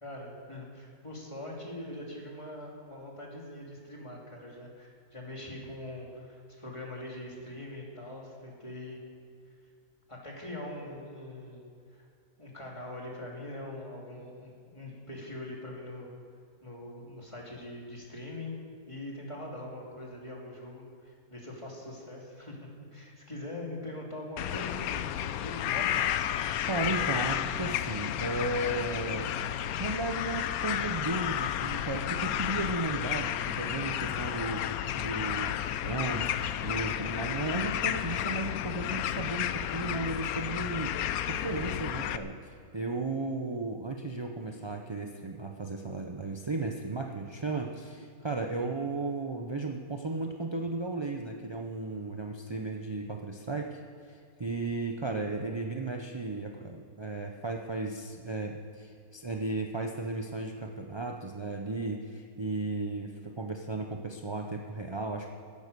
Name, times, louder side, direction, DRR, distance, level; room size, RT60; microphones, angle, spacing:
voice 1, 0.0-9.0 10.1-12.1 12.4-16.1 16.6-18.5 18.9-26.0 44.4-44.7 48.5-48.9, left 1 dB, 20° left, -2 dB, 2.7 m, -42 dB
sound 1, 24.4-42.2, left 11 dB, 75° left, 1.0 m, -32 dB
voice 2, 26.7-29.3 29.8-34.7 35.0-65.3, right 3 dB, 30° right, 2 dB, 0.4 m, -35 dB
16.0 x 10.5 x 6.8 m, 2.3 s
omnidirectional pair, 1.6 m